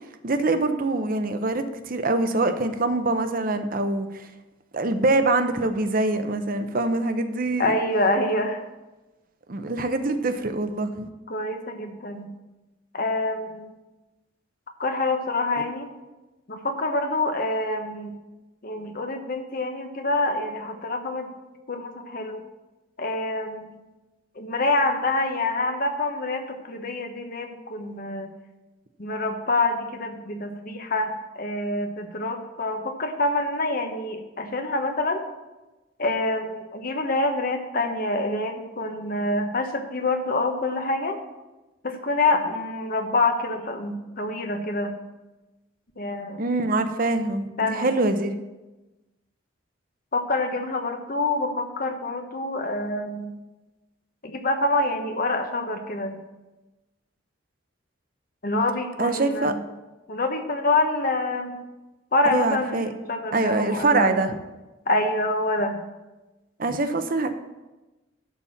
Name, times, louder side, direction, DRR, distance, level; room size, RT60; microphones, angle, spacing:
voice 1, 0.2-4.3 4.7-7.7 9.5-11.1 46.4-48.3 59.0-59.5 62.2-62.9 63.3-64.4 66.6-67.3, right 2 dB, 45° right, 8 dB, 0.8 m, -24 dB
voice 2, 7.6-8.6 11.3-12.3 12.9-13.7 14.8-15.9 16.5-18.1 18.6-21.3 21.7-22.4 23.0-23.8 24.4-28.3 29.0-35.2 36.0-41.2 41.8-44.9 46.0-46.4 47.6-47.9 50.1-53.3 54.2-56.2 58.4-59.6 60.1-61.6 62.1-64.2 64.9-65.8, left 2 dB, 50° left, 5 dB, 1.1 m, -26 dB
11.0 x 4.3 x 7.2 m, 1.1 s
head